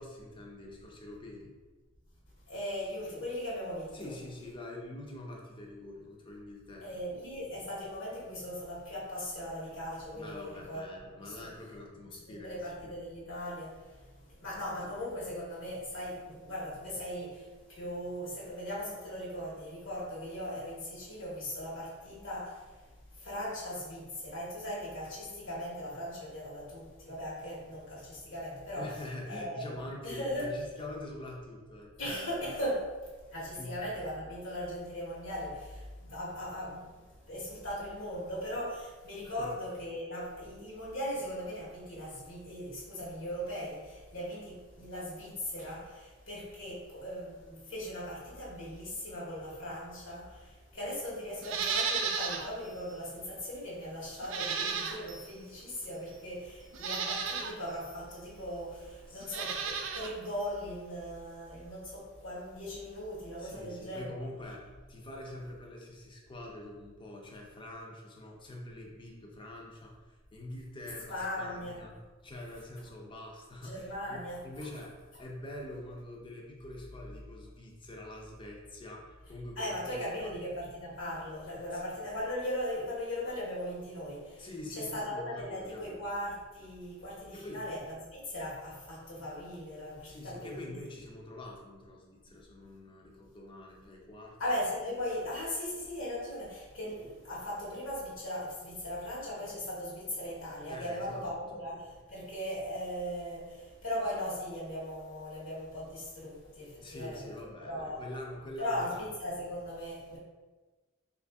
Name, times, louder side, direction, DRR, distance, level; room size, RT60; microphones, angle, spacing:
voice 1, 0.0-1.5 3.9-6.9 10.1-12.9 14.8-14.9 28.8-32.2 33.5-33.9 39.2-39.5 59.1-59.3 63.4-72.0 72.2-80.3 81.7-81.8 84.4-86.0 87.3-87.7 90.0-94.4 100.7-101.3 106.8-109.1, left 1 dB, 25° left, -1 dB, 0.6 m, -45 dB
voice 2, 2.5-4.0 6.8-10.8 11.2-11.3 12.3-22.8 23.1-28.9 29.3-29.6 30.0-30.5 32.0-64.1 71.1-71.8 73.6-74.4 79.5-90.7 94.4-107.2 107.7-108.0 108.6-110.2, equal, 70° left, -6 dB, 1.2 m, -38 dB
Livestock farm animals working animals, 51.4-52.5 52.9-53.0 54.2-55.3 56.1-56.2 56.7-57.5 59.2-60.1 60.4-60.5, right 6 dB, 70° right, 0.4 m, -33 dB
3.2 x 2.5 x 3.4 m, 1.3 s
head